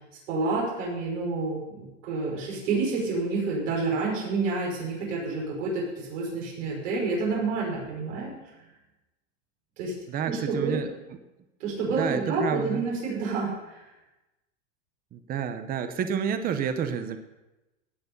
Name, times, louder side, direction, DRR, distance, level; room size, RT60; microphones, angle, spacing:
voice 1, 0.3-8.3 9.8-9.9 10.3-10.8 11.6-13.9, right 3 dB, 70° right, -3 dB, 5.3 m, -29 dB
voice 2, 10.1-10.9 12.0-12.9 15.1-17.2, right 7 dB, 25° right, 9 dB, 0.8 m, -29 dB
16.5 x 6.9 x 5.4 m, 1.0 s
supercardioid pair, 140°, 38 cm